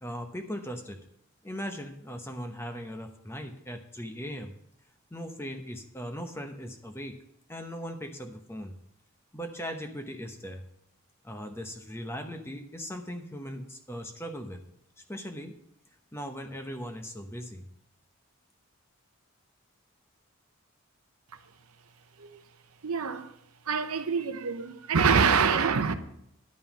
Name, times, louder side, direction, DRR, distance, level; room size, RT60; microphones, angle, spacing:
voice 1, 0.0-1.0 1.4-4.5 5.1-7.2 7.5-8.8 9.3-10.6 11.2-14.6 15.1-15.5 16.1-17.6, equal, 10° left, 0.8 m, -39 dB
voice 2, 22.8-23.3 23.7-25.9, right 5 dB, 80° right, 0.8 m, -25 dB
10.5 x 5.4 x 7.1 m
head